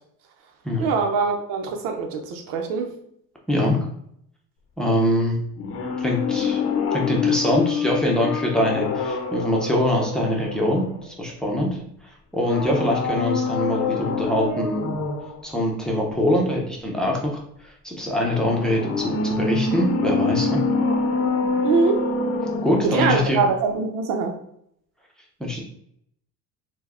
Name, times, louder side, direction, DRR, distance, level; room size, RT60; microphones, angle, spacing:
voice 1, 0.8-2.9 21.6-22.1 22.8-24.4, right 4 dB, 90° right, 4 dB, 0.9 m, -23 dB
voice 2, 3.5-3.8 4.8-5.4 6.0-6.6 6.9-11.8 12.3-14.9 15.4-17.4 17.8-20.6 22.6-23.4 25.4-25.6, left 1 dB, ahead, -2 dB, 0.7 m, -23 dB
sound 1, 5.6-11.3 12.4-15.4 18.2-23.4 23.7-23.8, left 4 dB, 50° left, 0.8 m, -26 dB
4.6 x 2.2 x 4.2 m, 0.71 s
cardioid pair, 150°, 32 cm